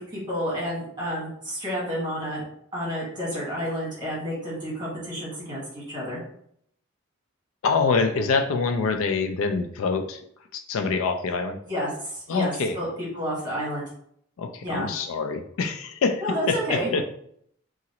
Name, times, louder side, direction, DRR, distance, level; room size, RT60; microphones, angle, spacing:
voice 1, 0.0-2.4 2.7-6.2 11.6-13.8 14.6-14.9 16.2-16.9, equal, 20° right, -6 dB, 1.4 m, -30 dB
voice 2, 7.6-10.2 10.5-11.6 12.3-12.8 14.4-16.2 16.5-17.0, left 4 dB, 75° left, 6 dB, 0.4 m, -25 dB
2.9 x 2.5 x 2.8 m, 0.67 s
head